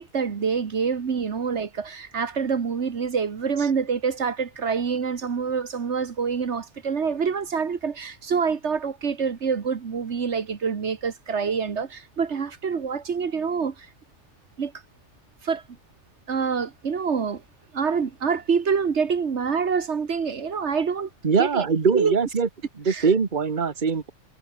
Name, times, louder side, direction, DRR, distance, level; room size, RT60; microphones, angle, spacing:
voice 1, 0.0-13.9 14.6-14.7 15.4-15.6 16.3-17.4 17.7-21.1 21.4-21.6 21.9-22.1 22.9-23.1, right 6 dB, 70° right, 1.7 m, -26 dB
voice 2, 21.2-22.5 22.8-24.1, right 5 dB, 45° right, 1.5 m, -22 dB
omnidirectional pair, 1.2 m